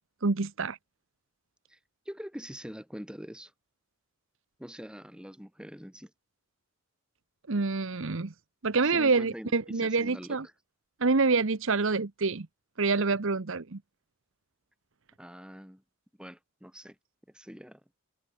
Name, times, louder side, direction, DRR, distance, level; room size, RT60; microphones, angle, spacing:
voice 1, 0.2-0.8 7.5-8.3 8.6-10.5 11.0-12.5 12.8-13.8, right 4 dB, 60° right, 0.9 m, -27 dB
voice 2, 2.1-3.5 4.6-6.1 8.8-10.5 15.2-15.8 16.2-17.0 17.3-17.8, equal, 5° right, 5.1 m, -44 dB
head